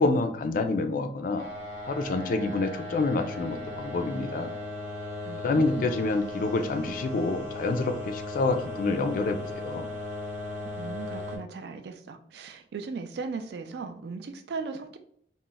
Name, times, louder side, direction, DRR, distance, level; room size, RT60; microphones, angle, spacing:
voice 1, 0.0-1.5 1.9-4.5 5.4-9.9, left 3 dB, 50° left, 7 dB, 0.3 m, -27 dB
sound 1, 1.4-11.4, left 2 dB, 45° right, 0.7 m, -37 dB
voice 2, 5.2-6.0 10.8-15.0, right 4 dB, 65° right, 7 dB, 0.3 m, -37 dB
2.4 x 2.1 x 3.8 m, 0.66 s
head